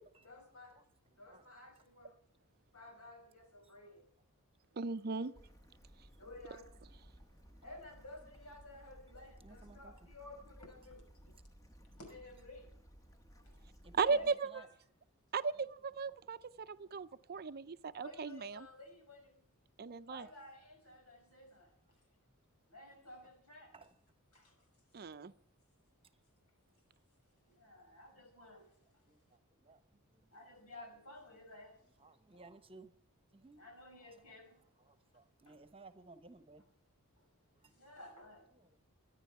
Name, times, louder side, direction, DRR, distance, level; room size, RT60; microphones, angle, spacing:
voice 1, 0.2-0.8 1.2-2.2 2.7-4.1 5.2-5.3 6.2-6.7 7.6-11.3 12.0-12.7 13.4-13.6 14.0-14.7 18.0-19.3 20.1-21.7 22.7-23.7 24.3-24.7 25.2-25.3 27.4-29.0 30.3-32.4 33.6-34.6 35.5-35.6 37.2-37.3 37.7-38.5, left 2 dB, 90° left, 3 dB, 5.8 m, -54 dB
voice 2, 1.1-1.5 9.4-10.1 13.8-14.7 15.6-15.7 16.1-16.4 23.7-24.0 27.8-28.5 29.1-30.6 32.0-32.9 33.3-33.6 34.0-34.4 34.8-36.6 37.5-37.7 38.5-38.8, right 3 dB, 25° right, 10 dB, 1.1 m, -60 dB
voice 3, 4.8-5.3 14.0-14.5 15.3-17.6 18.0-18.7 19.8-20.3 24.9-25.3, right 5 dB, 45° right, 13 dB, 0.5 m, -36 dB
Bird / Stream, 5.4-14.3, equal, 15° left, 1.1 m, -59 dB
24.5 x 10.0 x 4.7 m, 0.64 s
head